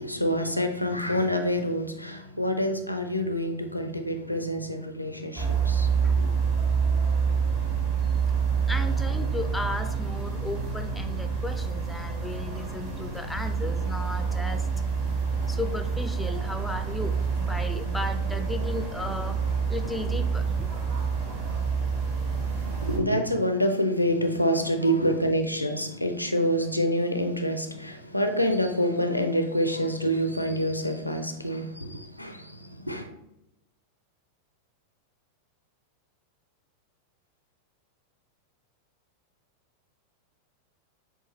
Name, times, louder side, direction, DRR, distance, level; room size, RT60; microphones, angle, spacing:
voice 1, 0.0-6.3 22.4-33.1, equal, 90° left, 0.4 m, -27 dB
sound 1, 5.4-23.0, right 5 dB, 45° right, 1.4 m, -27 dB
voice 2, 8.7-14.7 15.5-19.4 19.7-20.5, left 2 dB, 5° left, 0.4 m, -35 dB
6.9 x 2.4 x 3.0 m
figure-of-eight pair, 90°, 0 cm